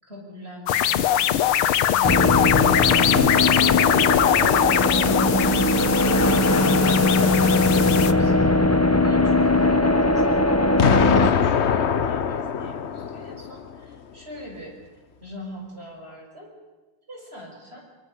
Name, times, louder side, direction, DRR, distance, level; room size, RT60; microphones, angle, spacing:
voice 1, 0.0-14.7 15.2-16.5 17.1-17.8, equal, 30° right, 0 dB, 6.4 m, -41 dB
sound 1, 0.7-8.1, left 11 dB, 85° left, 1.8 m, -22 dB
sound 2, 2.0-11.3, left 2 dB, 20° left, 0.4 m, -20 dB
Explosion, 10.8-13.8, left 7 dB, 55° left, 0.7 m, -23 dB
23.5 x 23.5 x 6.7 m, 1.2 s
omnidirectional pair, 2.3 m